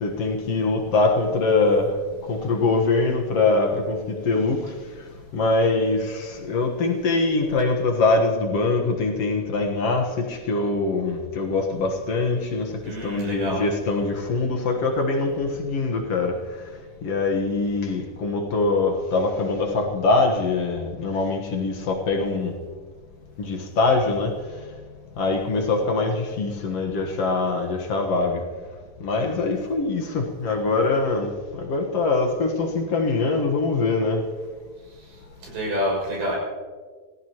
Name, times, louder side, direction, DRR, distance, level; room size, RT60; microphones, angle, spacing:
voice 1, 0.0-1.9 2.3-4.6 5.3-12.7 13.0-16.4 17.0-22.5 23.4-24.3 25.2-28.4 29.0-34.2, left 3 dB, 55° left, 2 dB, 1.8 m, -23 dB
voice 2, 12.8-13.6 34.9-36.4, equal, 75° right, -3 dB, 8.2 m, -28 dB
27.5 x 16.0 x 3.0 m, 1.5 s
omnidirectional pair, 4.5 m